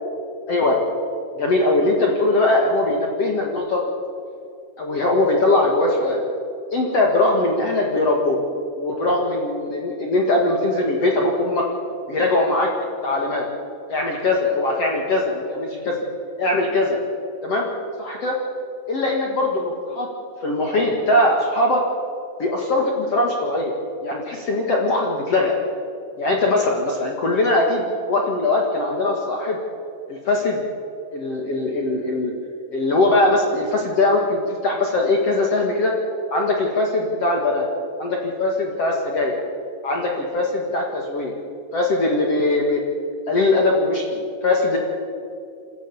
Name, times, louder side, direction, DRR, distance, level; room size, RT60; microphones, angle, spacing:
voice 1, 1.3-3.8 4.8-6.2 6.7-8.4 8.8-11.7 12.1-12.7 13.0-13.5 13.9-16.0 16.4-17.0 17.4-17.7 18.0-18.4 18.9-20.1 20.4-21.8 22.4-23.7 24.0-25.5 26.2-29.6 30.1-30.6 31.1-32.3 32.7-35.9 36.3-37.7 38.0-39.4 39.8-41.3 41.7-42.8 43.3-44.8, left 2 dB, 50° left, 0 dB, 2.1 m, -21 dB
27.5 x 13.5 x 8.6 m, 2.6 s
omnidirectional pair, 5.0 m